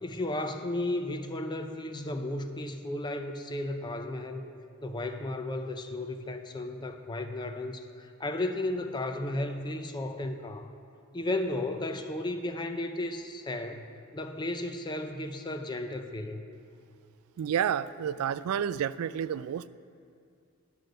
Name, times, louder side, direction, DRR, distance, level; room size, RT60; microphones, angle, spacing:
voice 1, 0.0-4.5 4.8-10.7 11.1-13.9 14.1-16.4, left 1 dB, 20° left, 7 dB, 0.5 m, -34 dB
voice 2, 17.4-19.7, right 8 dB, 80° right, 17 dB, 0.3 m, -30 dB
11.0 x 6.4 x 6.7 m, 2.4 s
head